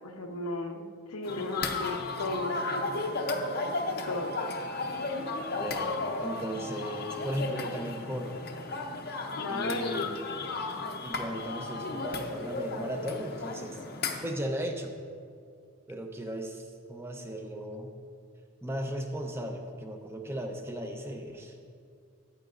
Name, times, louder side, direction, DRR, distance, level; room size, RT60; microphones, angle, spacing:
voice 1, 0.0-3.1 4.1-4.3 9.4-10.1, left 2 dB, 90° left, 4 dB, 0.9 m, -35 dB
sound 1, 1.2-14.3, left 3 dB, 45° left, 0.7 m, -34 dB
voice 2, 5.6-8.4 9.5-10.4 11.0-13.8 14.2-14.9 15.9-17.9 18.6-21.6, equal, 10° right, 4 dB, 0.7 m, -36 dB
14.0 x 9.6 x 2.6 m, 2.2 s
head